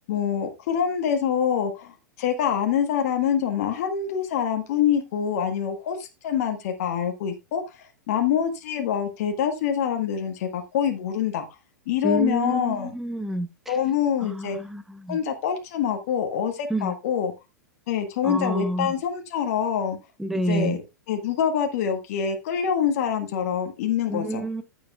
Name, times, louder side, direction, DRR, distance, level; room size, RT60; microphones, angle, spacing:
voice 1, 0.1-11.5 11.9-12.9 13.7-14.6 15.1-17.3 17.9-20.0 20.5-20.8 21.1-24.4, left 8 dB, 50° left, 1.5 m, -25 dB
voice 2, 12.0-13.8 14.2-15.2 16.7-16.9 18.2-18.9 20.2-20.8 24.1-24.6, right 1 dB, ahead, 0.7 m, -28 dB
15.0 x 7.2 x 2.3 m
figure-of-eight pair, 100°, 10 cm